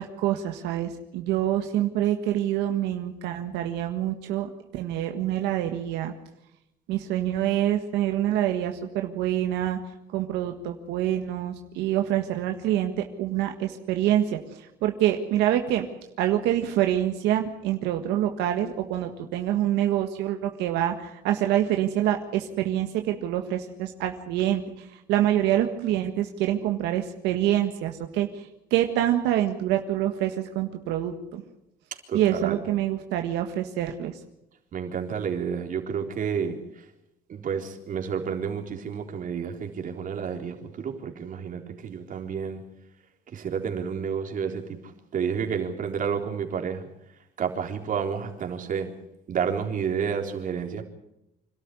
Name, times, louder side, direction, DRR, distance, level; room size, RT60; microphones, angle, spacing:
voice 1, 0.0-6.1 6.9-9.8 10.1-15.9 16.2-31.4 32.1-34.2, right 12 dB, 90° right, 5 dB, 1.7 m, -26 dB
voice 2, 32.1-32.6 34.7-36.8 37.3-42.6 43.3-44.8 45.1-46.9 47.4-48.9 49.3-50.8, right 7 dB, 50° right, 3 dB, 3.9 m, -30 dB
26.5 x 13.0 x 9.8 m, 0.85 s
cardioid pair, 110°, 17 cm